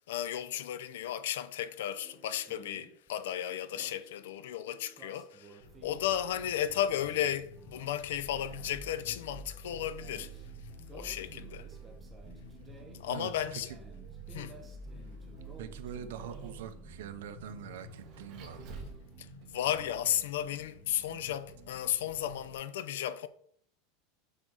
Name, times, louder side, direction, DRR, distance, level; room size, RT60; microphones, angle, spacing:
voice 1, 0.1-10.4 10.9-11.7 13.0-13.7 14.3-14.6 19.2-23.3, left 11 dB, 75° left, 0.6 m, -34 dB
sound 1, 1.9-19.3, right 3 dB, 10° right, 1.0 m, -56 dB
Vehicle, 5.6-22.5, right 2 dB, 35° right, 1.9 m, -49 dB
voice 2, 13.0-13.8 15.6-18.8, right 9 dB, 75° right, 0.9 m, -44 dB
7.6 x 6.3 x 4.0 m
supercardioid pair, 175°, 0 cm